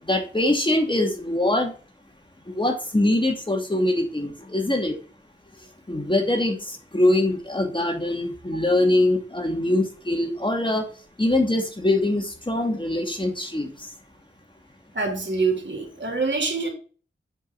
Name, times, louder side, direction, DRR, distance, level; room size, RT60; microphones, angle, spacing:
voice 1, 0.1-1.7 2.5-4.9 5.9-6.6 6.9-10.8 11.2-13.7, left 1 dB, 25° left, 3 dB, 2.4 m, -23 dB
voice 2, 14.9-16.7, right 4 dB, 60° right, 2 dB, 3.6 m, -25 dB
8.3 x 5.4 x 4.1 m, 0.37 s
wide cardioid pair, 55°, 21 cm